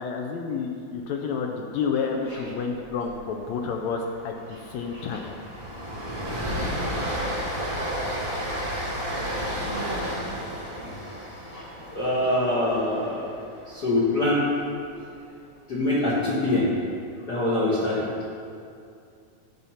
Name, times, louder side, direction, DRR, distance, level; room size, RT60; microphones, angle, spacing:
voice 1, 0.0-5.3, left 5 dB, 80° left, 2 dB, 1.8 m, -30 dB
voice 2, 2.0-2.4 4.9-5.0 5.9-6.3 6.6-6.7 10.8-10.9 11.5-13.3 13.7-14.4 15.7-16.7 17.3-18.1, left 1 dB, 60° left, -7 dB, 1.1 m, -25 dB
Train, 2.8-3.1 3.4-3.6 3.9-14.1, equal, 20° right, 0.7 m, -32 dB
10.5 x 5.6 x 5.6 m, 2.5 s
omnidirectional pair, 3.4 m